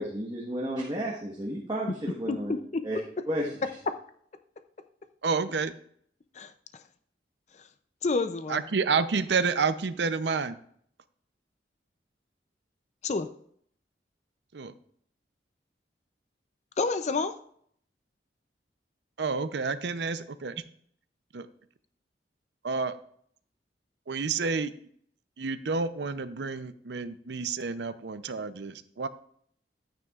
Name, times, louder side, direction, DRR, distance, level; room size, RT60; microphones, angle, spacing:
voice 1, 0.0-2.5 2.8-3.0 3.3-3.7, equal, 25° right, -4 dB, 1.3 m, -32 dB
voice 2, 2.3-2.8 6.4-6.5 8.0-8.6 13.0-13.3 16.8-17.3, left 3 dB, 40° left, 10 dB, 0.5 m, -29 dB
voice 3, 5.2-5.7 8.5-10.6 14.5-14.7 19.2-20.6 21.3-21.5 22.6-23.0 24.1-24.7 25.4-29.1, right 4 dB, 75° right, 12 dB, 0.6 m, -29 dB
12.0 x 9.2 x 2.4 m, 0.64 s
head